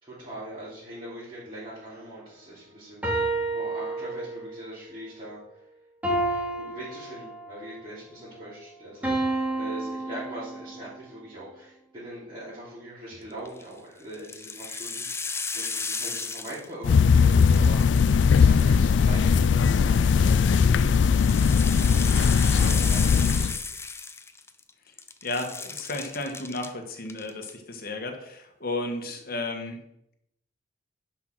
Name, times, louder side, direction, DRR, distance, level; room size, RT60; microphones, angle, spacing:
voice 1, 0.0-5.6 6.2-21.0 21.7-22.3 22.6-23.5, right 1 dB, 30° right, -11 dB, 3.9 m, -42 dB
sound 1, 3.0-4.6 6.0-7.7 9.0-10.9, right 2 dB, 10° right, 2.5 m, -30 dB
sound 2, 13.3-13.6 14.1-16.9 17.2-19.0 20.2-24.7 25.0-26.7 27.1-27.5, left 4 dB, 15° left, 0.6 m, -35 dB
sound 3, 16.8-23.6, left 6 dB, 80° left, 0.4 m, -19 dB
voice 2, 25.2-29.8, left 2 dB, 55° left, 5 dB, 1.7 m, -33 dB
10.5 x 5.9 x 6.2 m, 0.78 s
head